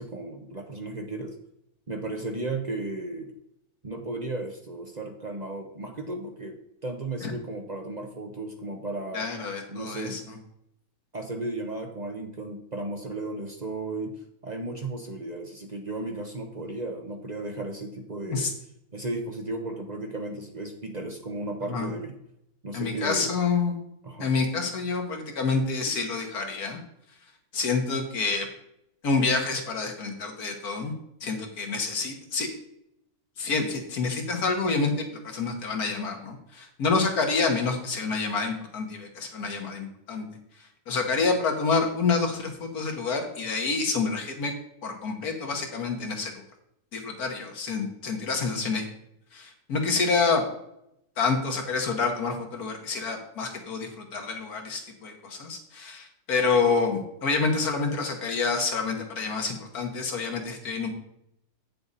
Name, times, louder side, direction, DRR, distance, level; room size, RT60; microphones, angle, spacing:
voice 1, 0.0-1.3 1.9-3.3 3.8-9.2 9.7-10.2 11.1-14.1 14.4-18.5 18.9-22.1 22.6-23.4 24.0-24.3, right 2 dB, 35° right, 3 dB, 0.8 m, -35 dB
voice 2, 9.1-10.4 18.3-18.5 21.7-21.9 22.7-23.8 24.2-26.8 27.5-28.5 29.0-30.9 31.2-32.5 33.4-40.3 40.9-44.5 44.8-46.3 46.9-48.9 49.3-50.4 51.2-60.9, left 4 dB, 80° left, 3 dB, 1.9 m, -28 dB
8.7 x 6.7 x 4.1 m, 0.79 s
omnidirectional pair, 1.6 m